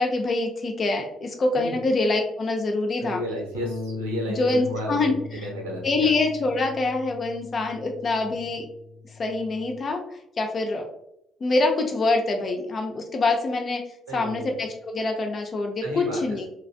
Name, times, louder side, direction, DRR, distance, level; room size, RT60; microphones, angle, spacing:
voice 1, 0.0-3.2 4.4-5.5 5.8-8.7 9.2-10.0 10.4-10.9 11.4-13.8 14.1-16.5, left 3 dB, 40° left, 2 dB, 0.6 m, -25 dB
voice 2, 3.0-6.1 8.1-8.4 14.1-14.5 15.8-16.5, equal, 75° right, -2 dB, 0.8 m, -33 dB
Bass guitar, 3.5-9.8, left 4 dB, 80° left, 0.3 m, -38 dB
3.2 x 2.4 x 2.4 m, 0.78 s
figure-of-eight pair, 45°, 0 cm